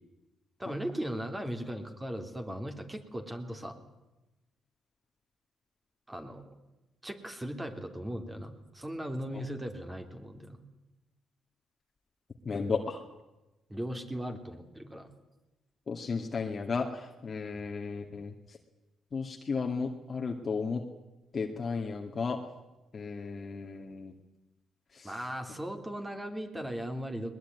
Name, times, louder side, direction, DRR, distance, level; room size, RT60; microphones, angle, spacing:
voice 1, 0.6-3.8 6.1-6.5 7.0-10.6 13.7-15.1 25.0-27.4, equal, 15° right, 5 dB, 3.5 m, -38 dB
voice 2, 12.5-13.0 15.9-18.3 19.1-20.8 21.3-22.4 22.9-24.1 24.9-25.1, left 4 dB, 40° left, 2 dB, 2.2 m, -34 dB
21.0 x 20.5 x 9.7 m, 1.0 s
cardioid pair, 95°, 0 cm